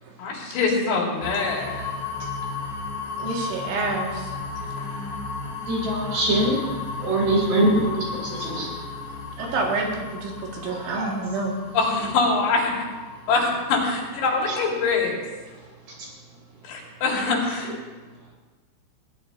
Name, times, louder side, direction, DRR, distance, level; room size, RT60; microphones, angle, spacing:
voice 1, 0.2-1.9 4.8-5.6 11.7-12.7 13.3-15.2 16.6-17.7, left 4 dB, 65° left, -2 dB, 4.6 m, -24 dB
sound 1, 1.2-15.0, left 4 dB, 40° left, 3.2 m, -35 dB
voice 2, 3.2-4.3 9.4-11.5, right 3 dB, 75° right, -2 dB, 4.8 m, -28 dB
voice 3, 5.7-6.6 7.0-7.7 8.0-8.7 9.4-9.5 10.7-11.1 14.5-14.6 16.0-16.1 17.3-17.4, right 1 dB, 55° right, -2 dB, 5.9 m, -24 dB
22.0 x 16.5 x 3.0 m, 1.3 s
omnidirectional pair, 5.5 m